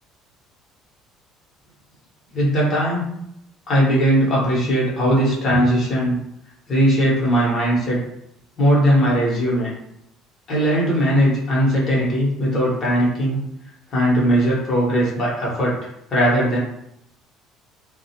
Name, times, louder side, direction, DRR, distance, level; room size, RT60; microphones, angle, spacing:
voice 1, 2.3-3.1 3.7-6.2 6.7-8.0 8.6-9.7 10.5-13.4 13.9-15.7 16.1-16.6, equal, 30° left, -6 dB, 0.9 m, -19 dB
2.3 x 2.1 x 2.8 m, 0.79 s
cardioid pair, 175°, 0 cm